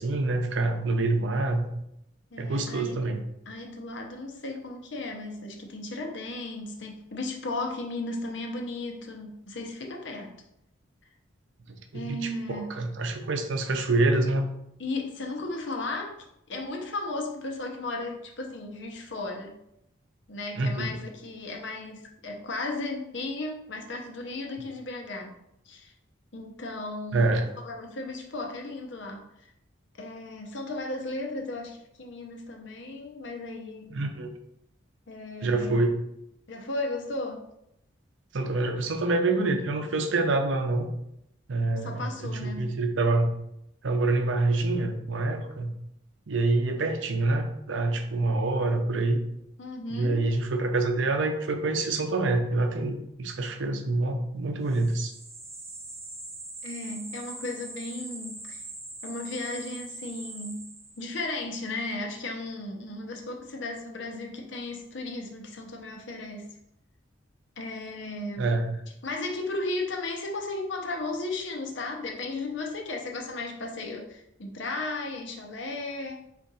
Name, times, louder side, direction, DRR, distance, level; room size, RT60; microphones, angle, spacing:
voice 1, 0.0-1.6 2.4-3.2 11.9-14.4 20.6-20.9 27.1-27.5 33.9-34.3 35.4-36.0 38.3-40.9 41.5-43.3 43.8-45.7 46.3-49.2 49.9-55.1 68.4-68.7, right 2 dB, 70° right, 5 dB, 0.6 m, -26 dB
voice 2, 2.3-2.9 3.5-10.4 11.9-12.7 14.8-16.1 16.5-19.6 20.3-25.4 25.6-25.9 26.3-29.5 29.9-33.9 35.1-35.9 36.5-37.4 41.8-42.7 49.6-50.2 56.6-58.6 59.0-60.7 61.0-66.6 67.6-68.5 69.0-76.2, left 2 dB, 65° left, 2 dB, 0.8 m, -35 dB
sound 1, 54.7-61.2, right 2 dB, 15° right, 0.5 m, -42 dB
4.7 x 2.5 x 4.0 m, 0.79 s
head